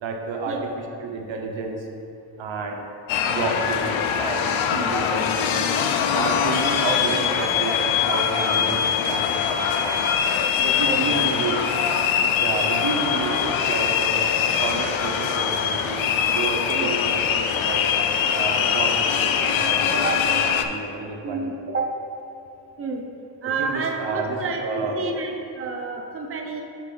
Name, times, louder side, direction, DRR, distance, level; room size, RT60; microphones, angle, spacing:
voice 1, 0.0-0.5 1.0-1.9 2.4-2.8 3.2-5.7 6.1-9.9 10.6-11.8 12.4-14.3 14.6-17.8 18.3-21.5 23.6-25.0, right 4 dB, 80° right, 2 dB, 0.9 m, -30 dB
sound 1, 3.1-20.6, left 7 dB, 85° left, 0.6 m, -22 dB
voice 2, 10.8-11.2 16.7-17.0 19.9-20.1 21.2-21.9 22.8-23.1 23.4-26.6, right 4 dB, 30° right, 2 dB, 0.7 m, -29 dB
7.5 x 4.6 x 3.9 m, 2.7 s
cardioid pair, 95°, 46 cm